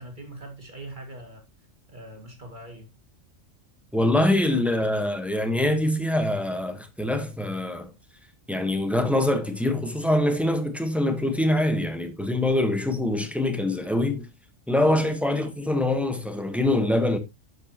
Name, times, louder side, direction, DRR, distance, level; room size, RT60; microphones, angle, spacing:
voice 1, 0.0-1.4 1.9-2.9, right 1 dB, 40° right, 2.2 m, -42 dB
voice 2, 3.9-7.9 8.5-14.3 14.7-17.2, left 1 dB, ahead, 1.0 m, -24 dB
11.0 x 6.9 x 2.9 m
omnidirectional pair, 1.3 m